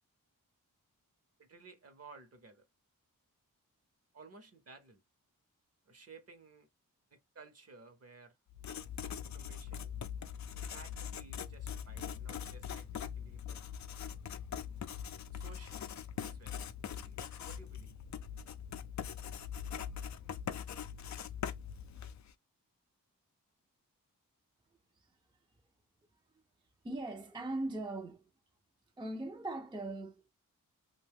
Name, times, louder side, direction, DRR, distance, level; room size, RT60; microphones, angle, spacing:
voice 1, 1.4-2.7 4.1-5.0 5.8-6.7 7.1-8.4 9.2-9.9 10.6-13.6 15.3-16.6 16.8-18.0, right 4 dB, 45° right, 0.8 m, -56 dB
Writing, 8.5-22.3, left 8 dB, 55° left, 0.4 m, -42 dB
voice 2, 26.8-28.2 29.0-30.3, right 2 dB, 15° right, 0.5 m, -40 dB
2.6 x 2.2 x 3.4 m
wide cardioid pair, 90°, 34 cm